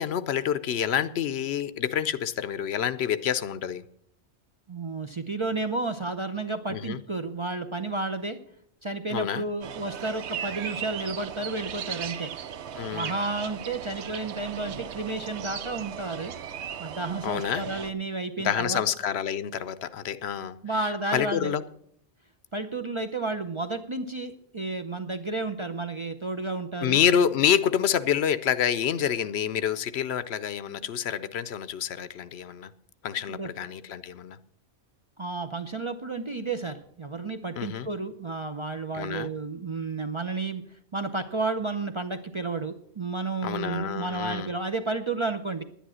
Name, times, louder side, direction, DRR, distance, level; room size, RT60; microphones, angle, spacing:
voice 1, 0.0-3.8 6.7-7.0 9.1-9.5 12.7-13.1 17.2-17.6 18.4-20.6 21.1-21.6 26.8-32.7 33.0-34.4 37.6-37.9 38.9-39.3 43.4-44.5, left 9 dB, 70° left, 0.9 m, -27 dB
voice 2, 4.7-8.4 8.8-12.3 12.9-16.3 16.8-18.8 20.6-21.5 22.5-27.0 33.3-33.5 35.2-40.6 40.9-45.6, right 3 dB, 35° right, 0.5 m, -32 dB
sound 1, 9.6-17.9, right 9 dB, 80° right, 1.0 m, -37 dB
10.5 x 10.0 x 6.2 m
omnidirectional pair, 1.1 m